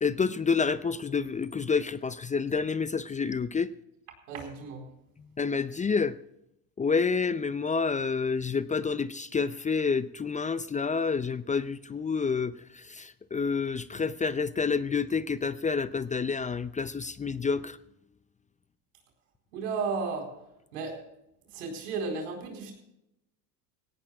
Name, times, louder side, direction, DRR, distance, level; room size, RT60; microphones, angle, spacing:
voice 1, 0.0-3.7 5.4-6.2 6.8-17.8, left 5 dB, 15° left, 14 dB, 0.5 m, -28 dB
voice 2, 4.3-4.8 19.5-20.3 20.7-21.0 21.5-22.7, right 4 dB, 85° right, 2 dB, 4.5 m, -33 dB
17.5 x 17.5 x 2.4 m, 0.85 s
hypercardioid pair, 85°, 44 cm